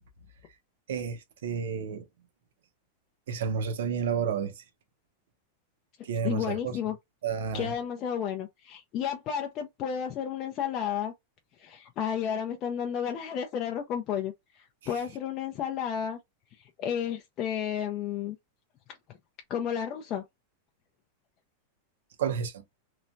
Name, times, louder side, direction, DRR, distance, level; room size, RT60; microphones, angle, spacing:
voice 1, 0.9-2.1 3.3-4.6 6.0-6.8 7.2-7.7 22.2-22.6, right 6 dB, 80° right, 0.7 m, -31 dB
voice 2, 6.2-7.0 7.5-11.1 11.6-16.2 16.6-18.4 19.5-20.2, left 8 dB, 25° left, 0.4 m, -32 dB
3.0 x 2.2 x 2.5 m
supercardioid pair, 175°, 0 cm